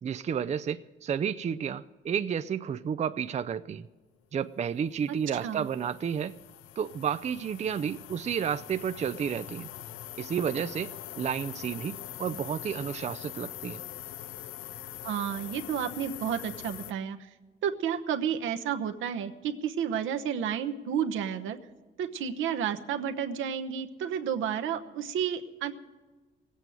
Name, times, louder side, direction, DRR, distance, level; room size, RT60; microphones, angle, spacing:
voice 1, 0.0-3.9 4.3-6.4 6.8-9.7 10.2-10.9 11.2-13.8, right 8 dB, 35° right, 12 dB, 0.4 m, -31 dB
sound 1, 4.7-16.9, left 12 dB, 85° left, 0.5 m, -43 dB
voice 2, 15.0-17.3 17.6-21.6 22.0-25.7, right 8 dB, 80° right, 6 dB, 1.0 m, -31 dB
17.0 x 8.3 x 9.1 m, 1.3 s
cardioid pair, 90°, 20 cm